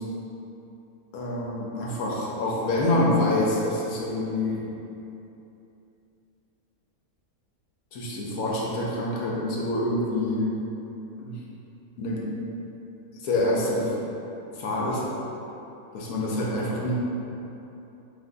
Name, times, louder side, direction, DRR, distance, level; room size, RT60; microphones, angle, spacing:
voice 1, 1.1-4.7 7.9-10.5 11.2-11.4 12.0-12.3 13.2-14.0 14.5-15.1 15.9-16.9, left 1 dB, 75° left, -4 dB, 1.2 m, -26 dB
5.3 x 3.7 x 2.3 m, 2.9 s
omnidirectional pair, 1.5 m